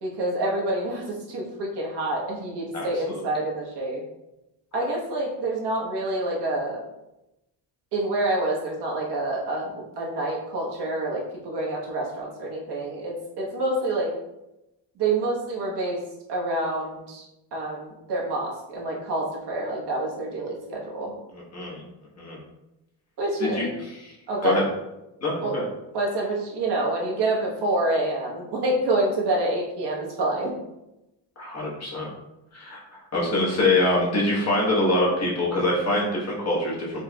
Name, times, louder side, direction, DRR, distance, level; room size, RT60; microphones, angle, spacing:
voice 1, 0.0-4.0 4.7-6.8 7.9-14.1 15.0-16.0 16.3-17.3 17.5-21.1 23.2-23.7 24.3-24.6 25.4-25.5 25.9-30.5, right 2 dB, 65° right, -3 dB, 1.2 m, -27 dB
voice 2, 2.7-3.2 21.3-21.8 22.2-22.4 23.5-23.7 24.0-24.1 24.4-24.6 25.2-25.6 31.4-32.1 32.5-37.0, left 2 dB, 35° left, -5 dB, 1.2 m, -24 dB
4.4 x 3.2 x 2.3 m, 0.92 s
cardioid pair, 150°, 42 cm